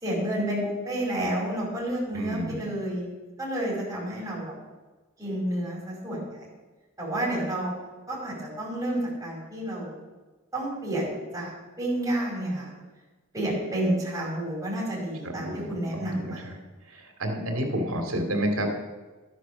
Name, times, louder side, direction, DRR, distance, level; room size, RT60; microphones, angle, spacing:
voice 1, 0.0-3.1 3.4-4.5 5.2-6.2 7.0-7.7 8.1-10.0 10.5-11.5 11.8-12.7 13.3-16.5, right 1 dB, 15° right, -5 dB, 5.2 m, -30 dB
voice 2, 2.1-2.6 15.2-16.3 17.2-18.8, equal, 80° right, 4 dB, 2.7 m, -29 dB
12.5 x 10.0 x 6.3 m, 1.2 s
head